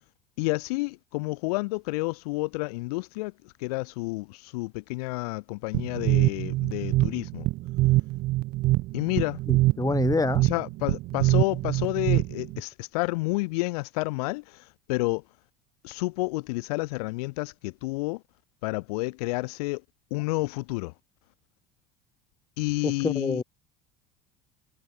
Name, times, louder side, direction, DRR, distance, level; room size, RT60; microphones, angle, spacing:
voice 1, 0.4-3.3 3.6-7.5 8.9-9.4 10.4-15.2 15.8-18.2 18.6-19.8 20.1-20.9 22.6-23.4, left 24 dB, 70° left, 1.3 m, -30 dB
sound 1, 5.7-12.6, right 19 dB, 50° right, 0.6 m, -25 dB
voice 2, 9.5-10.4 22.8-23.4, left 3 dB, 15° left, 3.4 m, -27 dB
hypercardioid pair, 70°, 20 cm